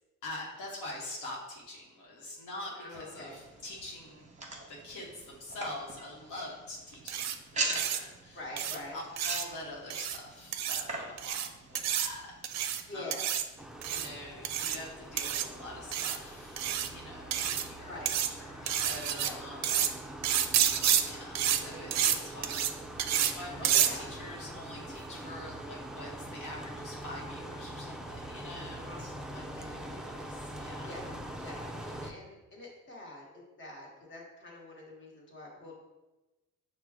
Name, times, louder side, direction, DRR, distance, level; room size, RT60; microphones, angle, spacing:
voice 1, 0.2-4.3 4.7-8.4 8.9-13.1 13.9-19.9 21.0-22.6 23.1-29.6 29.9-31.0, left 1 dB, 85° left, -3 dB, 1.0 m, -45 dB
voice 2, 2.7-3.4 8.3-9.0 12.8-13.3 17.9-18.1 19.2-19.9 23.6-24.1 28.7-29.0 29.3-29.7 30.6-35.8, left 1 dB, 40° left, -3 dB, 1.3 m, -46 dB
sound 1, 3.1-12.9, right 2 dB, 25° right, 0.9 m, -42 dB
sound 2, 7.1-7.3 7.7-8.0 8.6-8.8 9.2-9.4 9.9-10.2 10.5-10.8 11.2-11.5 11.7-12.1 12.4-12.8 13.1-13.4 13.8-14.1 14.4-14.8 15.2-15.4 15.9-16.2 16.6-16.9 17.3-17.7 18.1-18.3 18.7-19.3 19.6-19.9 20.2-21.0 21.3-21.6 21.9-22.2 22.4-22.7 23.0-23.3 23.6-23.9, right 10 dB, 65° right, 0.4 m, -29 dB
sound 3, 13.6-32.1, right 1 dB, ahead, 0.4 m, -43 dB
6.0 x 2.2 x 3.5 m, 1.1 s
cardioid pair, 90°, 30 cm